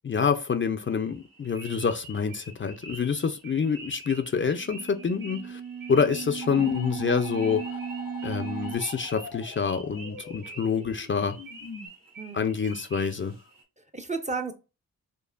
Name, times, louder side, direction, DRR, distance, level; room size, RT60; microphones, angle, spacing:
voice 1, 0.0-5.6 5.9-7.6 8.2-11.4 12.3-13.3, left 6 dB, 35° left, 0.5 m, -27 dB
sound 1, 0.8-13.6, right 2 dB, 60° right, 1.7 m, -47 dB
sound 2, 4.4-8.8, right 7 dB, 80° right, 0.8 m, -37 dB
sound 3, 6.4-11.9, left 4 dB, 85° left, 1.2 m, -43 dB
voice 2, 12.2-12.5 13.8-14.5, right 4 dB, 20° right, 0.6 m, -34 dB
5.2 x 2.1 x 2.4 m
cardioid pair, 60°, 36 cm